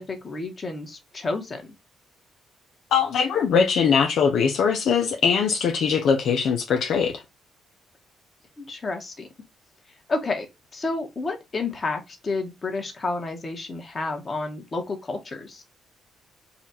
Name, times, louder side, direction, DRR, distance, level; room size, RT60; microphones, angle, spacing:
voice 1, 0.0-1.7 8.6-9.3 10.1-10.5 10.7-15.6, left 3 dB, 35° left, 1.4 m, -30 dB
voice 2, 2.9-7.2, left 6 dB, 70° left, 0.6 m, -21 dB
4.2 x 2.5 x 4.2 m
cardioid pair, 90°, 0 cm